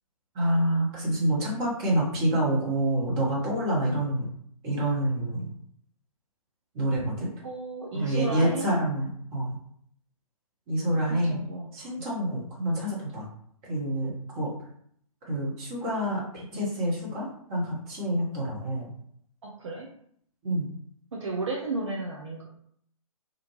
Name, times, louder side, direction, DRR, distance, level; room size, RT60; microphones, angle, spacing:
voice 1, 0.3-4.3 4.6-5.5 6.7-7.3 7.9-9.6 10.7-11.4 11.7-13.3 13.6-14.5 15.2-18.9 20.4-20.7, right 1 dB, 25° right, -5 dB, 0.9 m, -27 dB
voice 2, 7.4-8.7 11.1-11.7 19.4-19.9 21.1-22.5, right 2 dB, 55° right, -2 dB, 0.5 m, -33 dB
2.5 x 2.1 x 2.9 m, 0.67 s
figure-of-eight pair, 125°, 19 cm